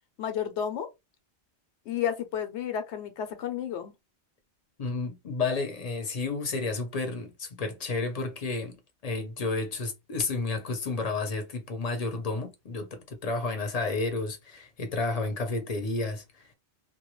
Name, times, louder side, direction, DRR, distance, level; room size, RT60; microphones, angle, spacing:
voice 1, 0.2-0.9 1.9-3.9, left 9 dB, 80° left, 0.9 m, -31 dB
voice 2, 4.8-8.8 9.0-16.5, left 3 dB, 45° left, 0.6 m, -31 dB
2.3 x 2.2 x 2.9 m
omnidirectional pair, 1.2 m